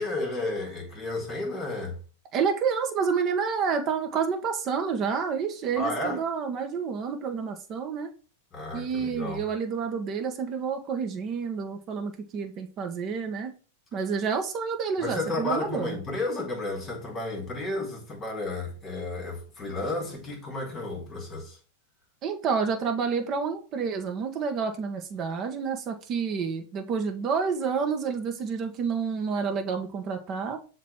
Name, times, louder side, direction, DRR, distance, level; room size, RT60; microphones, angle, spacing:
voice 1, 0.0-2.0 5.8-6.2 8.5-9.4 15.0-21.6, left 2 dB, 20° left, 4.3 m, -32 dB
voice 2, 2.3-8.1 8.7-13.5 13.9-16.0 22.2-30.6, right 6 dB, 35° right, 1.4 m, -29 dB
7.5 x 3.0 x 5.8 m
hypercardioid pair, 130°, 0 cm